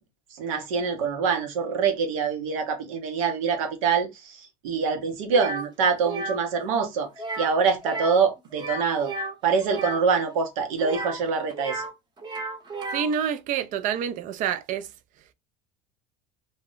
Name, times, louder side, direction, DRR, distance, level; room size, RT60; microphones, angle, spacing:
voice 1, 0.3-7.1 7.4-9.1 9.4-11.8, right 5 dB, 85° right, 0.7 m, -25 dB
sound 1, 5.3-5.7 6.0-6.4 7.2-7.6 7.8-8.2 8.5-10.0 10.8-11.9 12.2-13.1, right 2 dB, 25° right, 0.8 m, -33 dB
voice 2, 12.9-14.9, right 8 dB, 50° right, 0.4 m, -27 dB
2.1 x 2.1 x 3.7 m
supercardioid pair, 100°, 17 cm